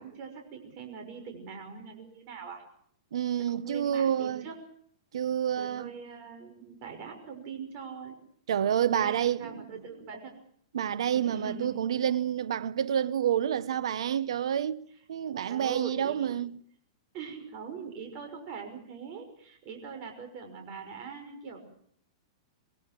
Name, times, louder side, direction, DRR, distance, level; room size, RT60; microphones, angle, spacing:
voice 1, 0.0-2.6 3.4-4.6 5.6-8.2 8.9-10.3 11.1-11.7 15.5-16.4 17.1-21.6, right 5 dB, 40° right, 6.1 m, -42 dB
voice 2, 3.1-4.5 5.1-5.9 8.5-9.6 10.7-16.6, right 9 dB, 80° right, 0.9 m, -28 dB
24.0 x 23.5 x 6.1 m
hypercardioid pair, 140°, 3 cm